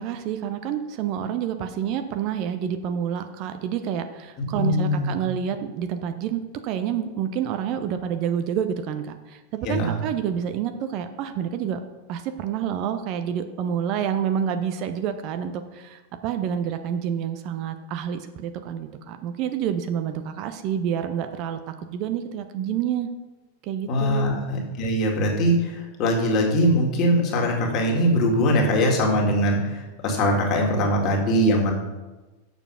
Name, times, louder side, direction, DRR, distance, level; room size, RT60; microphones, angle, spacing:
voice 1, 0.0-11.8 12.1-23.1 23.6-24.4, right 8 dB, 40° right, 8 dB, 0.7 m, -28 dB
voice 2, 4.5-5.1 9.6-9.9 23.9-31.7, equal, 35° left, -1 dB, 2.2 m, -22 dB
6.9 x 6.9 x 5.6 m, 1.1 s
figure-of-eight pair, 90°, 0 cm